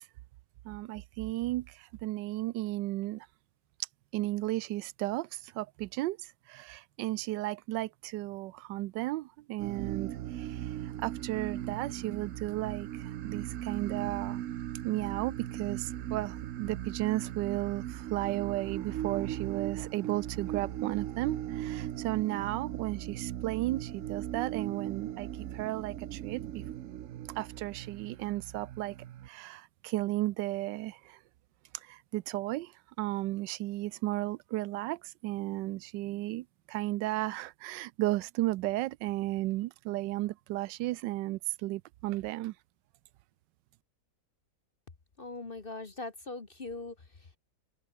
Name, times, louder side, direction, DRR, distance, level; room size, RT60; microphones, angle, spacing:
voice 1, 0.6-3.3 4.1-14.4 14.8-26.6 27.3-29.0 29.2-31.2 31.7-32.7 33.0-42.5, right 17 dB, 85° right, 1.2 m, -34 dB
sound 1, 9.6-29.3, right 12 dB, 60° right, 0.9 m, -38 dB
voice 2, 45.2-47.4, left 3 dB, 30° left, 1.6 m, -41 dB
open air
omnidirectional pair, 1.9 m